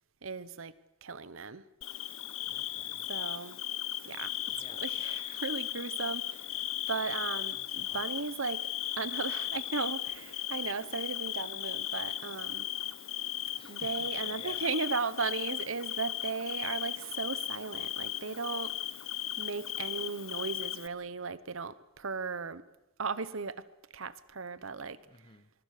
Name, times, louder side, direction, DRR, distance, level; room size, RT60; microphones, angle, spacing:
voice 1, 0.2-0.7 1.0-1.6 3.1-3.6 4.0-6.6 6.9-8.7 9.0-12.7 13.7-18.7 19.4-22.6 23.0-23.6 23.9-25.0, right 4 dB, 65° right, 16 dB, 1.0 m, -36 dB
Bird / Cricket, 1.8-20.9, left 13 dB, 70° left, 1.0 m, -36 dB
voice 2, 2.4-3.1 4.5-4.9 7.6-8.0 13.6-14.6 25.0-25.5, left 3 dB, 25° left, 13 dB, 1.1 m, -54 dB
24.5 x 23.0 x 6.7 m, 0.96 s
head